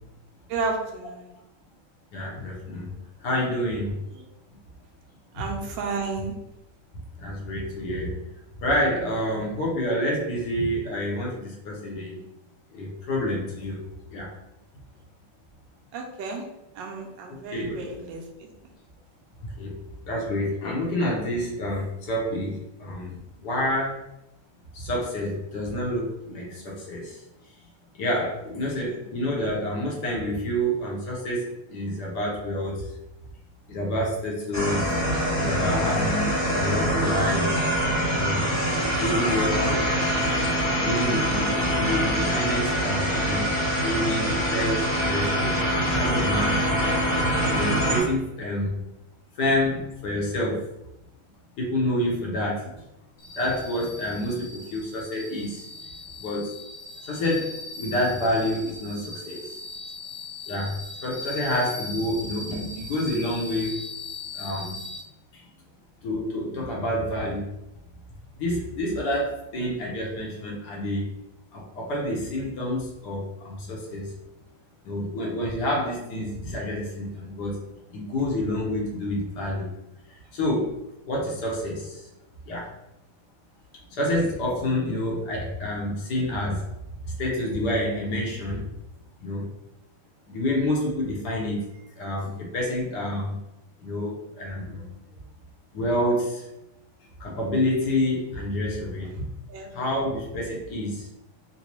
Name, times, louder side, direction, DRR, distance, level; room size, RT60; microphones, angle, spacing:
voice 1, 0.5-1.3 4.1-4.2 5.3-6.4 15.9-16.4 16.7-18.5 28.9-29.0 99.5-99.7, right 4 dB, 70° right, 1 dB, 1.2 m, -32 dB
voice 2, 2.1-2.9 3.2-4.0 5.3-5.4 7.2-8.2 8.6-12.2 12.7-13.8 14.1-14.4 17.5-17.7 19.6-19.7 20.0-24.0 24.7-27.2 27.9-32.9 33.7-37.5 38.1-38.5 38.9-39.9 40.8-46.8 47.5-48.8 49.4-50.7 51.6-52.7 53.3-55.7 56.2-56.5 57.0-59.5 60.5-63.8 64.3-64.7 66.0-67.5 68.4-71.1 71.5-74.1 74.8-77.6 77.9-79.7 80.3-80.7 81.1-82.0 82.5-82.7 84.0-86.6 87.0-88.7 89.2-89.5 90.3-93.4 93.8-94.9 95.7-96.5 97.2-99.2 99.7-101.1, left 1 dB, 60° left, -3 dB, 1.2 m, -28 dB
sound 1, 34.5-48.0, equal, 35° left, 1.0 m, -24 dB
sound 2, 53.2-65.0, left 2 dB, 80° left, 0.6 m, -39 dB
4.0 x 2.2 x 3.0 m, 0.90 s
omnidirectional pair, 2.3 m